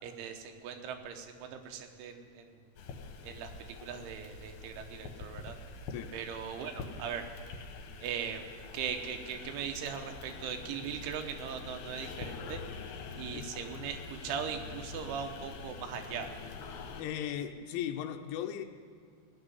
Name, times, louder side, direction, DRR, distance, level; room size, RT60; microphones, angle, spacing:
voice 1, 0.0-2.6 3.2-5.6 6.1-7.3 8.0-8.4 8.7-12.6 13.1-16.3, right 7 dB, 90° right, 5 dB, 3.5 m, -39 dB
sound 1, 2.8-17.0, left 4 dB, 70° left, 3.1 m, -45 dB
voice 2, 17.0-18.7, left 10 dB, 90° left, 6 dB, 3.1 m, -37 dB
17.5 x 6.2 x 9.8 m, 2.2 s
omnidirectional pair, 5.5 m